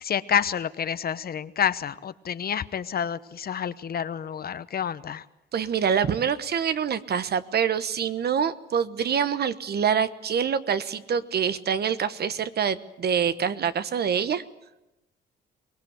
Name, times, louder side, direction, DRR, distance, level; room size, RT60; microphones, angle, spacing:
voice 1, 0.0-5.2, left 8 dB, 50° left, 14 dB, 1.0 m, -28 dB
voice 2, 5.5-14.4, right 7 dB, 55° right, 13 dB, 1.2 m, -25 dB
23.5 x 19.5 x 8.2 m, 0.96 s
cardioid pair, 90°, 20 cm